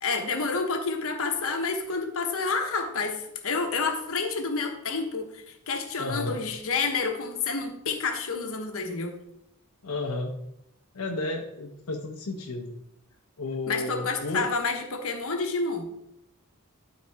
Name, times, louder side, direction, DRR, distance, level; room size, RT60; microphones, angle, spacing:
voice 1, 0.0-9.1 13.7-15.9, left 4 dB, 65° left, 4 dB, 1.1 m, -29 dB
voice 2, 6.0-6.3 9.8-10.3 10.9-12.7 13.4-14.5, left 2 dB, 85° left, 1 dB, 0.8 m, -32 dB
12.0 x 4.2 x 3.5 m, 0.82 s
head